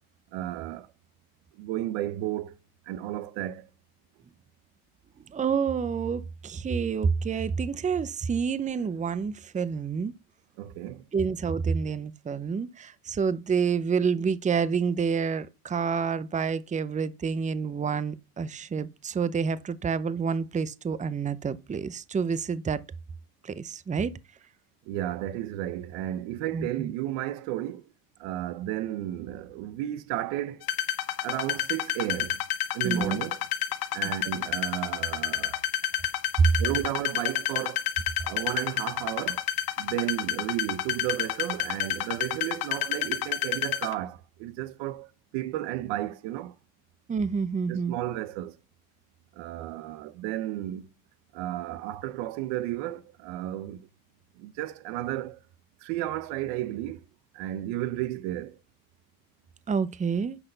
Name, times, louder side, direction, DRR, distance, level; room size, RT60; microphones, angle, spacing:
voice 1, 0.3-0.9 1.6-2.6 2.9-3.7 10.6-11.0 24.9-27.8 28.2-30.6 31.2-32.4 32.7-33.4 33.9-35.6 36.6-37.8 38.2-39.4 39.8-46.5 47.7-48.5 49.4-50.9 51.3-53.8 54.4-55.4 55.8-57.0 57.3-58.6, right 14 dB, 80° right, 0.9 m, -33 dB
voice 2, 5.3-10.1 11.1-22.8 23.4-24.1 26.5-26.9 32.8-33.2 36.4-36.5 47.1-47.9 59.7-60.4, right 6 dB, 20° right, 0.6 m, -28 dB
sound 1, 30.6-43.9, left 11 dB, 60° left, 1.5 m, -29 dB
10.0 x 4.1 x 6.7 m
supercardioid pair, 95°, 41 cm